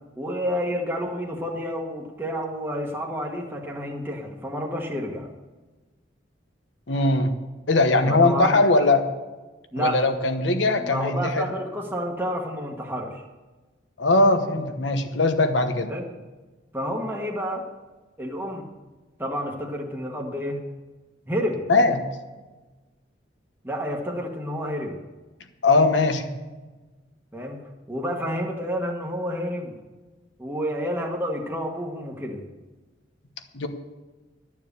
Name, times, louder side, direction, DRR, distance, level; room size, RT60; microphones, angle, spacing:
voice 1, 0.2-5.3 8.1-8.6 9.7-10.1 10.8-13.2 15.9-16.1 16.7-17.7 18.2-18.7 19.2-20.6 21.3-21.6 23.6-25.0 27.3-27.6 27.9-29.7 30.4-32.4, equal, 10° right, -1 dB, 1.2 m, -29 dB
voice 2, 6.9-7.3 7.7-9.0 9.8-11.4 14.0-15.9 21.7-22.0 25.6-26.3 33.5-33.7, left 2 dB, 75° left, 7 dB, 1.1 m, -20 dB
11.5 x 7.2 x 6.8 m, 1.2 s
head